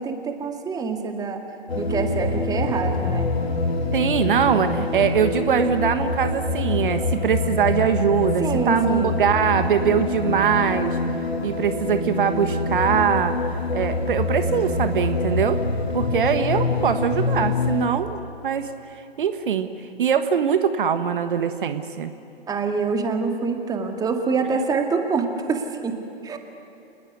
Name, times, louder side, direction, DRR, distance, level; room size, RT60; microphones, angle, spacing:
voice 1, 0.0-1.4 1.7-3.3 8.4-9.2 22.5-26.4, right 4 dB, 10° right, 5 dB, 2.1 m, -26 dB
sound 1, 1.7-17.9, left 3 dB, 80° left, 3.1 m, -25 dB
voice 2, 3.9-11.0 11.4-13.4 13.7-15.6 15.9-18.7 19.2-19.7 20.0-22.1, right 7 dB, 55° right, 10 dB, 1.6 m, -22 dB
28.0 x 20.5 x 9.7 m, 2.9 s
figure-of-eight pair, 125°, 31 cm